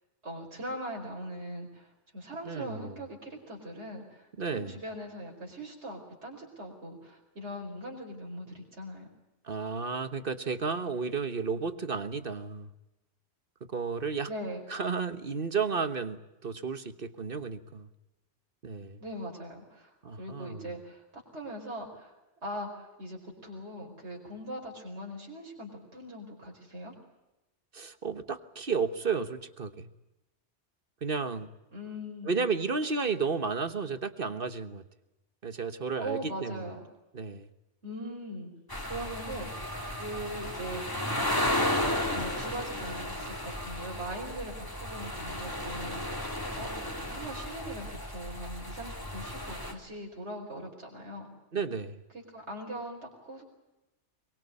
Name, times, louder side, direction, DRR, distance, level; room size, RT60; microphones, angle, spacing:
voice 1, 0.2-9.1 14.3-14.6 19.0-22.1 22.4-26.9 31.7-32.4 36.0-36.8 37.8-38.5 38.8-39.7 40.0-41.1 42.1-46.2 46.6-46.7 47.1-51.3 52.1-53.4, right 1 dB, 65° right, -1 dB, 5.1 m, -41 dB
voice 2, 2.4-3.0 4.4-4.8 9.4-12.7 13.7-14.3 14.7-17.9 18.6-19.0 20.0-20.7 27.7-29.9 31.0-31.5 32.2-34.8 35.4-36.6 37.1-37.5 51.5-52.0, right 5 dB, 50° right, 11 dB, 1.5 m, -32 dB
sound 1, 38.7-49.7, left 1 dB, 15° left, 3.2 m, -34 dB
23.5 x 23.0 x 8.4 m, 0.95 s
omnidirectional pair, 1.2 m